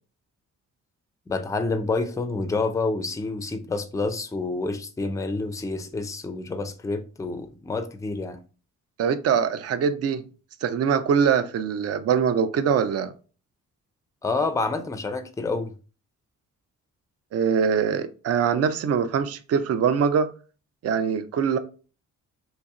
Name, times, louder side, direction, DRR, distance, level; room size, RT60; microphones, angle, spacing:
voice 1, 1.3-8.4 14.2-15.7, left 3 dB, 10° left, 0.4 m, -28 dB
voice 2, 9.0-10.2 10.6-13.1 17.3-20.3 20.8-21.6, right 7 dB, 55° right, 0.5 m, -23 dB
2.9 x 2.8 x 3.5 m
cardioid pair, 100°, 31 cm